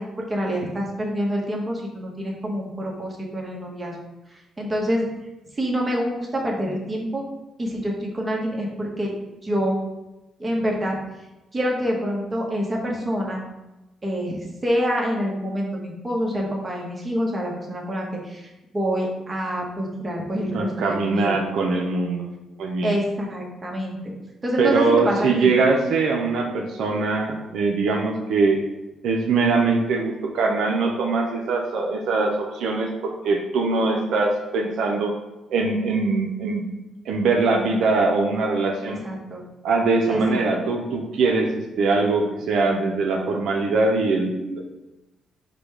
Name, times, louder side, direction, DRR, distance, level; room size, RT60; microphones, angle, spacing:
voice 1, 0.0-3.9 4.6-5.1 5.5-7.2 7.6-9.1 9.4-9.8 10.4-10.9 11.5-13.4 14.0-21.4 22.8-24.1 24.4-25.5 39.0-39.4 40.1-40.5, equal, 20° right, -1 dB, 1.0 m, -26 dB
voice 2, 20.5-22.3 22.6-22.9 24.6-28.6 29.0-35.1 35.5-36.7 37.1-39.0 39.6-44.6, right 3 dB, 75° right, 1 dB, 0.5 m, -22 dB
5.0 x 2.2 x 4.6 m, 0.99 s
cardioid pair, 90°, 0 cm